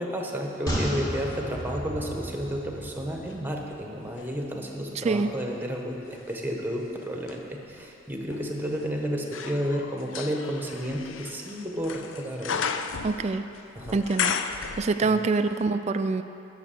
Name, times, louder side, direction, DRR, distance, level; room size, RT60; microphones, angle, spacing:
voice 1, 0.0-12.7 13.7-14.0 15.0-15.2, equal, 10° right, 1 dB, 1.1 m, -32 dB
sound 1, 0.7-4.1 4.4-4.5, equal, 20° left, 2.0 m, -34 dB
sound 2, 1.3-3.5 4.0-15.3 15.6-15.7, left 6 dB, 85° left, 0.5 m, -36 dB
voice 2, 5.0-5.3 13.0-13.4 13.9-14.3 14.8-16.2, right 3 dB, 35° right, 10 dB, 0.3 m, -25 dB
11.0 x 6.4 x 6.8 m, 2.7 s
head